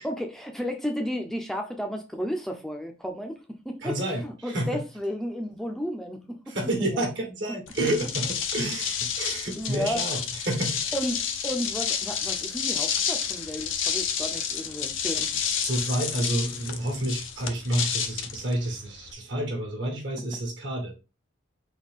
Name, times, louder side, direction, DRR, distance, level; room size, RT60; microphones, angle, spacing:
voice 1, 0.0-3.4 3.6-4.0 4.2-7.1 9.6-10.2 10.9-15.3, equal, ahead, 0.5 m, -33 dB
voice 2, 3.8-4.7 6.5-8.3 8.5-10.8 15.6-20.9, right 1 dB, 60° right, 1.2 m, -29 dB
sound 1, 7.7-19.1, left 7 dB, 75° left, 0.5 m, -30 dB
4.0 x 2.7 x 3.6 m
head